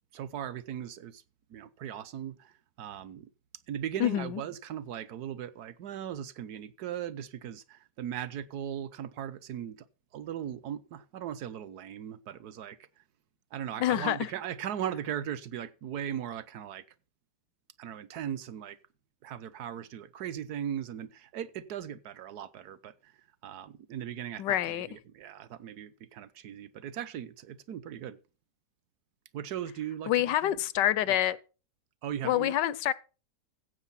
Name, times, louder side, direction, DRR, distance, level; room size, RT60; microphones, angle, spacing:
voice 1, 0.1-1.2 1.5-3.3 3.7-9.9 10.1-13.0 13.5-16.8 17.8-18.8 19.2-23.2 23.4-28.2 29.3-30.5 31.1-31.2 32.0-32.6, right 10 dB, 70° right, 1.4 m, -38 dB
voice 2, 4.0-4.4 13.8-14.2 24.4-24.9 30.1-31.4 32.2-32.9, left 12 dB, 90° left, 1.4 m, -27 dB
15.5 x 6.4 x 5.7 m
omnidirectional pair, 1.8 m